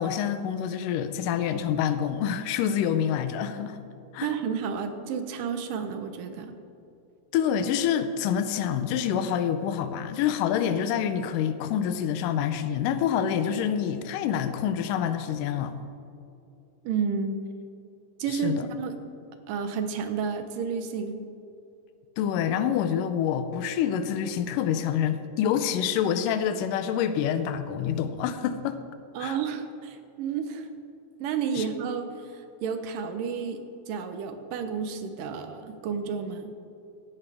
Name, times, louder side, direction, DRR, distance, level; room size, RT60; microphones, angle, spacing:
voice 1, 0.0-3.8 4.1-4.3 7.3-15.7 18.3-18.7 22.2-28.8 29.2-29.4 31.6-31.7, left 9 dB, 85° left, 10 dB, 2.2 m, -27 dB
voice 2, 4.2-6.5 16.8-17.4 18.2-18.9 19.5-21.2 29.2-30.7 31.2-33.6 33.9-36.5, right 6 dB, 80° right, 7 dB, 2.6 m, -31 dB
16.5 x 12.0 x 3.5 m, 2.6 s
omnidirectional pair, 3.8 m